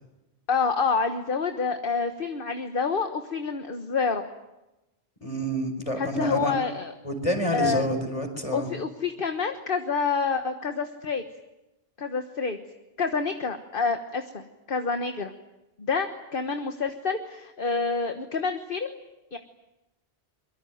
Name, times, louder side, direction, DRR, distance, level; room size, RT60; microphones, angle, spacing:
voice 1, 0.5-4.2 5.9-6.9 7.5-7.9 8.5-11.2 12.0-12.6 13.0-14.4 14.7-15.3 15.8-19.0 19.3-19.4, left 5 dB, 55° left, 7 dB, 1.6 m, -28 dB
voice 2, 5.2-6.5 7.0-8.7, equal, 30° left, 6 dB, 4.7 m, -28 dB
24.5 x 23.0 x 9.3 m, 0.98 s
omnidirectional pair, 1.1 m